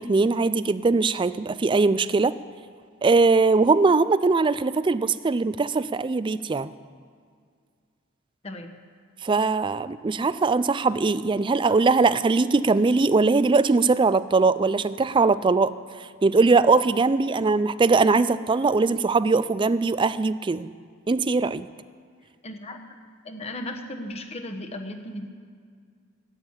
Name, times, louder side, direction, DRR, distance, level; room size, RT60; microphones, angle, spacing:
voice 1, 0.0-2.4 3.0-6.7 9.2-15.7 16.2-20.7 21.1-21.7, right 4 dB, 25° right, 15 dB, 0.3 m, -21 dB
voice 2, 8.4-8.7 17.1-17.4 22.4-23.0 23.2-25.3, left 1 dB, 30° left, 4 dB, 1.2 m, -36 dB
13.5 x 8.9 x 8.8 m, 2.1 s
head